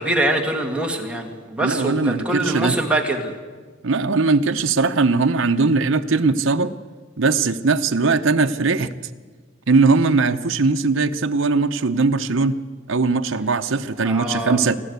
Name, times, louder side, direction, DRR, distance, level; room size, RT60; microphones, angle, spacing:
voice 1, 0.0-3.3 14.0-14.8, right 1 dB, 5° right, 1 dB, 2.2 m, -24 dB
voice 2, 1.6-2.8 3.8-6.7 7.2-8.9 9.7-12.6 12.9-14.8, right 4 dB, 75° right, 7 dB, 0.8 m, -19 dB
28.0 x 11.5 x 8.1 m, 1.5 s
head